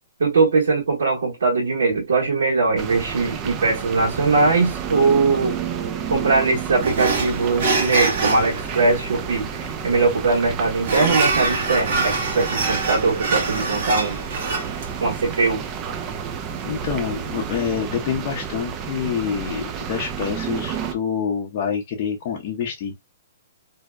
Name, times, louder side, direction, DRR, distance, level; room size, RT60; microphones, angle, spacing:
voice 1, 0.2-5.5 6.1-14.2 15.0-15.6, right 3 dB, 85° right, 1.2 m, -21 dB
sound 1, 2.8-20.9, right 8 dB, 25° right, 0.4 m, -31 dB
sound 2, 6.8-17.7, right 3 dB, 55° right, 0.9 m, -26 dB
voice 2, 16.6-22.9, left 7 dB, 40° left, 0.6 m, -27 dB
2.6 x 2.1 x 2.2 m
hypercardioid pair, 155°, 0 cm